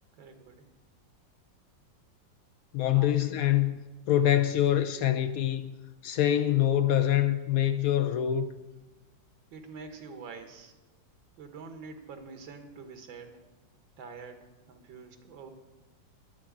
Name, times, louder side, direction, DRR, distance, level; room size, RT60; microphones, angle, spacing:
voice 1, 0.2-0.7 2.8-3.3 9.5-10.7 11.4-13.4 14.0-14.4 14.7-15.5, right 4 dB, 90° right, 2.0 m, -46 dB
voice 2, 2.7-3.8 4.1-5.7 6.0-8.5, left 11 dB, 75° left, 0.8 m, -25 dB
10.5 x 7.6 x 8.5 m
omnidirectional pair, 2.1 m